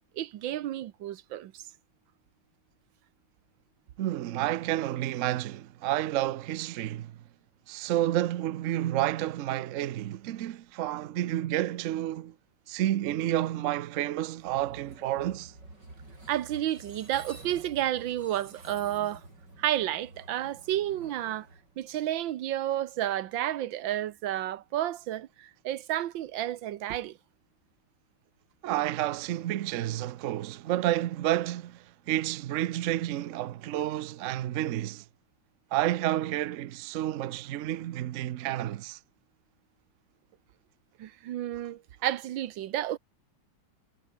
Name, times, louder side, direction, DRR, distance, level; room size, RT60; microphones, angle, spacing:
voice 1, 0.0-1.6 16.3-19.2 19.6-21.5 21.8-27.2 41.0-43.0, right 12 dB, 70° right, 1.6 m, -31 dB
voice 2, 4.0-7.2 7.7-12.3 12.7-15.5 28.6-35.0 35.7-39.0, right 13 dB, 90° right, 0.6 m, -30 dB
Train, 14.4-22.3, right 2 dB, 55° right, 8.1 m, -50 dB
omnidirectional pair, 2.2 m